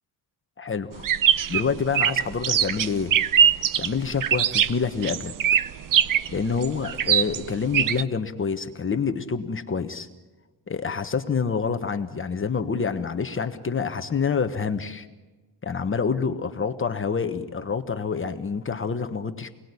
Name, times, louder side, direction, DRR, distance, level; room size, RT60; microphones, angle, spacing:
voice 1, 0.6-1.1 1.5-3.2 3.8-5.3 6.3-10.1 10.7-15.1 15.6-19.5, left 5 dB, 25° left, 7 dB, 1.2 m, -27 dB
sound 1, 1.0-8.0, right 9 dB, 45° right, 0.8 m, -22 dB
28.5 x 19.5 x 9.8 m, 1.2 s
cardioid pair, 155°, 45 cm